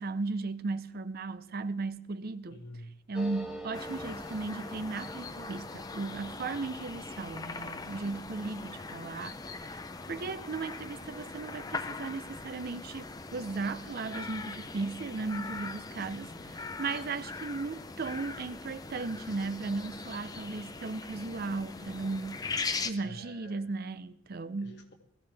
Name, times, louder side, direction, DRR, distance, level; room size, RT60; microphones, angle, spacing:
voice 1, 0.0-2.6 3.1-9.8 10.1-16.3 16.8-22.6 22.8-24.8, right 3 dB, 45° right, 0.5 m, -36 dB
voice 2, 2.5-3.0 16.3-16.7 23.0-23.7 24.6-24.9, left 1 dB, 50° left, 1.9 m, -49 dB
sound 1, 3.1-12.3 12.6-12.7 12.9-13.5, right 1 dB, 5° right, 0.9 m, -48 dB
sound 2, 3.7-22.9, left 4 dB, 15° left, 0.5 m, -41 dB
20.0 x 15.0 x 3.4 m
head